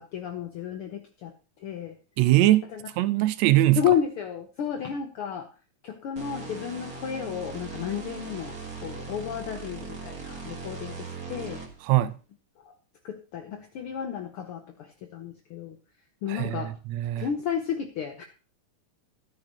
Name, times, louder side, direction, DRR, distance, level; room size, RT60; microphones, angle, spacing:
voice 1, 0.0-2.0 2.7-2.8 3.8-5.5 5.8-11.6 12.6-12.7 13.0-15.8 16.2-16.7 17.2-18.2, left 8 dB, 75° left, 1.3 m, -32 dB
voice 2, 2.2-3.8 11.9-12.1 16.3-17.3, right 15 dB, 75° right, 1.7 m, -22 dB
sound 1, 6.2-11.9, right 4 dB, 35° right, 1.7 m, -39 dB
13.0 x 9.7 x 2.9 m
omnidirectional pair, 3.5 m